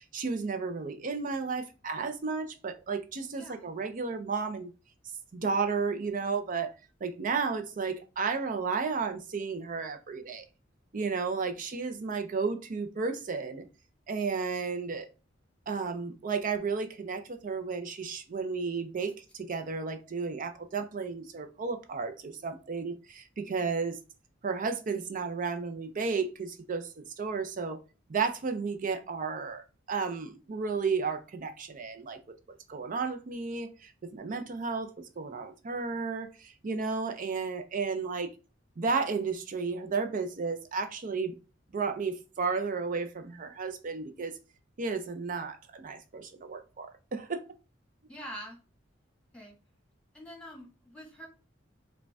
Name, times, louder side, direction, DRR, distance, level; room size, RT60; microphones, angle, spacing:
voice 1, 0.0-4.7 5.3-6.7 7.0-10.5 10.9-13.6 14.1-15.1 15.7-24.0 24.4-27.8 28.1-32.2 32.7-34.9 35.2-38.3 38.8-41.3 41.7-44.3 44.8-47.4, right 4 dB, 45° right, 7 dB, 0.5 m, -33 dB
voice 2, 3.3-3.7 48.1-48.6 49.3-49.5 50.1-51.3, equal, 5° left, 0 dB, 1.4 m, -45 dB
5.0 x 2.2 x 3.4 m, 0.32 s
head